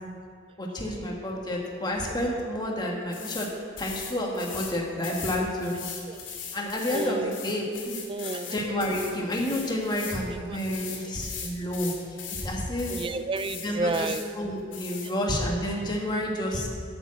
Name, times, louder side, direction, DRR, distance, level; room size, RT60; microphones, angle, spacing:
voice 1, 0.6-3.5 3.8-5.7 6.5-8.0 8.5-11.9 12.4-13.0 13.6-16.7, left 1 dB, 25° left, -1 dB, 1.5 m, -30 dB
sound 1, 3.1-3.5 3.8-4.7 5.0-10.2 10.5-12.5 12.8-13.1 13.3-14.3 14.7-15.1, left 7 dB, 80° left, 2.5 m, -39 dB
voice 2, 6.9-7.3 8.1-8.6 10.5-10.6 12.9-14.2, right 3 dB, 25° right, 12 dB, 0.4 m, -30 dB
8.1 x 7.1 x 7.4 m, 2.3 s
head